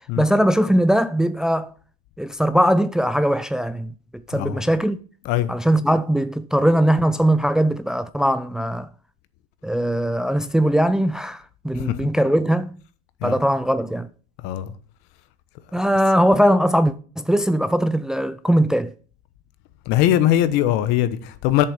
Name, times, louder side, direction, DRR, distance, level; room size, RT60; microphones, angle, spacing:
voice 1, 0.2-1.7 2.2-3.9 4.3-5.0 5.5-8.9 9.6-12.8 13.2-14.1 15.7-18.9, equal, 5° right, 0.4 m, -20 dB
voice 2, 4.3-4.6 5.2-5.5 11.7-12.1 13.2-13.4 14.4-14.7 19.9-21.6, left 12 dB, 60° left, 1.1 m, -21 dB
8.3 x 7.1 x 6.6 m
supercardioid pair, 115°, 19 cm